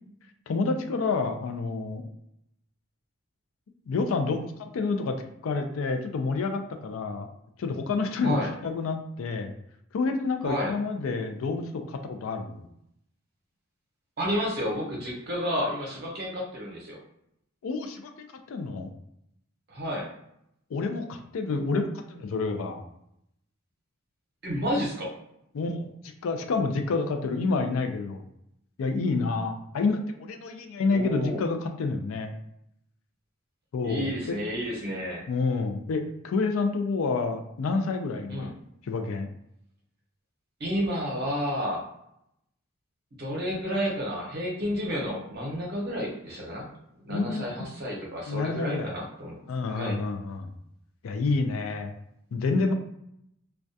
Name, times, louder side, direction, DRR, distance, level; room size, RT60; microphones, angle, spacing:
voice 1, 0.5-2.0 3.9-5.2 5.4-7.3 7.6-9.5 9.9-12.7 17.6-18.9 20.7-22.8 25.5-25.9 26.2-28.2 28.8-32.3 33.7-34.4 35.3-38.5 38.8-39.3 47.1-47.7 48.3-49.0 49.5-50.5 51.0-51.9 52.3-52.7, left 3 dB, 80° left, 5 dB, 0.4 m, -28 dB
voice 2, 8.2-8.5 10.4-10.7 14.2-17.0 19.7-20.1 24.4-25.1 30.9-31.4 33.8-35.3 38.3-38.5 40.6-41.9 43.2-46.7 47.0-49.4 49.7-50.0, equal, 50° right, -1 dB, 0.7 m, -31 dB
2.2 x 2.2 x 2.6 m, 0.77 s
head